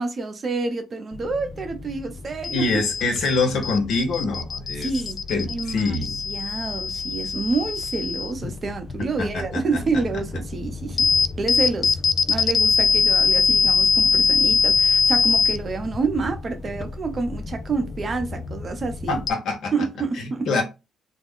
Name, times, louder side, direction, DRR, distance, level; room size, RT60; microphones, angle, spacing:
voice 1, 0.0-2.7 4.8-5.2 5.5-6.0 6.3-11.1 11.4-12.0 12.3-19.2 19.7-20.5, right 4 dB, 40° right, 0.6 m, -28 dB
sound 1, 1.1-19.3, left 5 dB, 40° left, 0.3 m, -24 dB
voice 2, 2.5-4.9 5.3-6.2 9.0-9.8 19.1-19.9 20.1-20.6, left 3 dB, 75° left, 0.9 m, -25 dB
2.4 x 2.1 x 3.5 m
cardioid pair, 90°, 0 cm